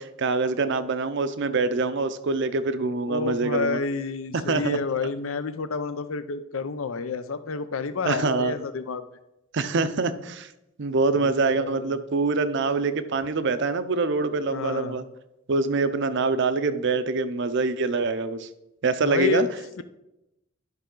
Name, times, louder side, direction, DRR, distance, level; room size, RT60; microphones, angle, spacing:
voice 1, 0.0-3.8 4.3-4.8 8.1-8.6 9.5-10.5 10.8-15.0 15.5-18.5 18.8-19.5, right 3 dB, 60° right, 12 dB, 0.5 m, -25 dB
voice 2, 3.1-9.0 11.1-12.0 14.5-15.0 19.0-19.5, left 4 dB, 75° left, 12 dB, 0.5 m, -29 dB
11.0 x 5.7 x 3.8 m, 0.92 s
head